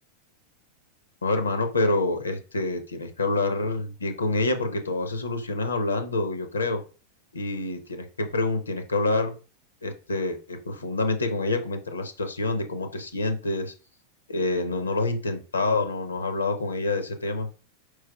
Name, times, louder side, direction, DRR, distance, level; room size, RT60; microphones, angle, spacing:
voice 1, 1.2-6.8 7.3-9.3 9.8-13.7 14.3-17.5, left 2 dB, 75° left, 8 dB, 0.6 m, -27 dB
4.7 x 4.6 x 2.3 m, 0.35 s
figure-of-eight pair, 90°, 0 cm